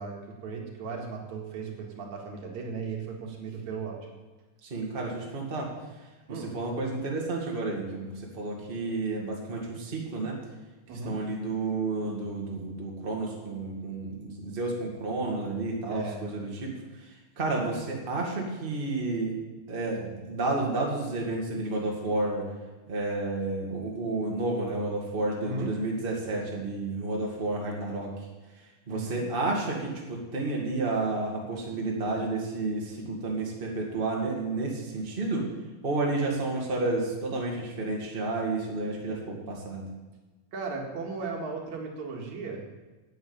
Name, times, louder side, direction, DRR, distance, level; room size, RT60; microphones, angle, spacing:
voice 1, 0.0-4.1 6.3-6.5 10.9-11.2 15.9-16.2 25.4-25.7 28.9-29.2 40.5-42.7, right 4 dB, 70° right, 0 dB, 3.1 m, -36 dB
voice 2, 4.6-5.7 6.3-10.4 11.0-16.7 17.4-19.4 19.7-22.5 22.9-28.1 28.9-35.4 35.8-39.9, right 2 dB, 20° right, -1 dB, 2.1 m, -31 dB
11.0 x 7.8 x 8.9 m, 1.2 s
omnidirectional pair, 3.4 m